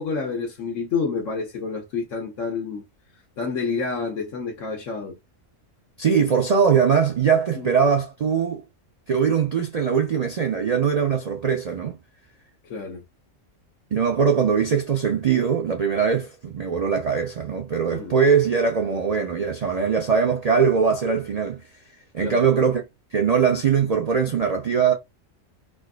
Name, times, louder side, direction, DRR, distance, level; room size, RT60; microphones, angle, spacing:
voice 1, 0.0-2.8 3.4-5.2 7.5-7.7 12.7-13.0 17.9-18.1 22.2-22.4, left 4 dB, 70° left, 1.2 m, -28 dB
voice 2, 6.0-8.6 9.1-12.0 13.9-21.6 22.1-22.8 23.1-24.9, right 6 dB, 70° right, 0.3 m, -21 dB
4.4 x 2.4 x 2.2 m
omnidirectional pair, 1.4 m